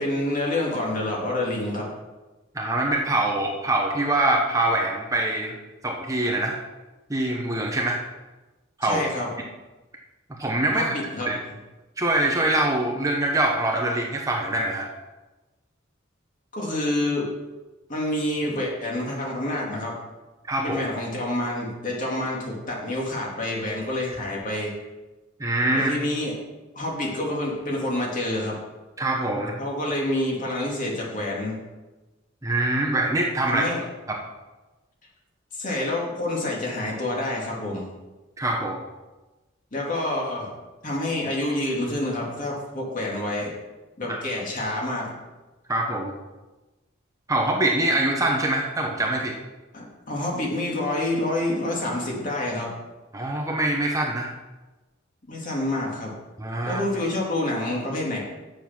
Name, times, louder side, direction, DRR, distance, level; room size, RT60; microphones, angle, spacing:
voice 1, 0.0-1.9 8.8-9.3 10.7-11.3 16.5-17.3 17.9-20.0 20.6-24.7 25.7-26.3 26.7-28.6 29.6-31.5 33.5-33.8 35.5-37.9 39.7-40.5 40.8-43.5 44.0-45.1 49.7-52.7 55.3-56.1 56.6-58.2, left 1 dB, 40° left, -2 dB, 2.7 m, -27 dB
voice 2, 2.5-5.6 5.8-6.6 7.1-8.0 8.8-9.0 10.4-10.9 11.3-11.4 12.0-14.9 20.4-20.8 25.4-25.9 29.0-29.6 32.4-33.6 34.1-34.2 38.4-38.8 44.1-44.2 45.7-46.1 47.3-49.3 53.1-54.3 56.4-56.8, right 1 dB, 15° right, 1 dB, 0.9 m, -24 dB
8.9 x 7.1 x 6.0 m, 1.1 s
head